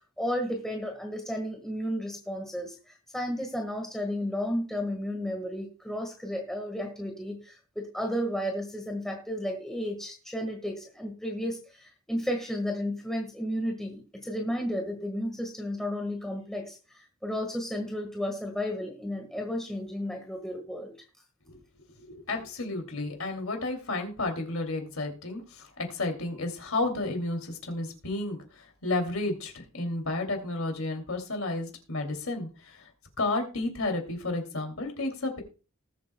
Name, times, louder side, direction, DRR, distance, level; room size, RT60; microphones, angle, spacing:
voice 1, 0.2-2.7 3.1-20.9, equal, ahead, 2 dB, 1.5 m, -33 dB
voice 2, 22.0-32.9 33.2-35.4, left 2 dB, 80° left, 4 dB, 2.6 m, -32 dB
19.5 x 7.6 x 2.2 m, 0.34 s
head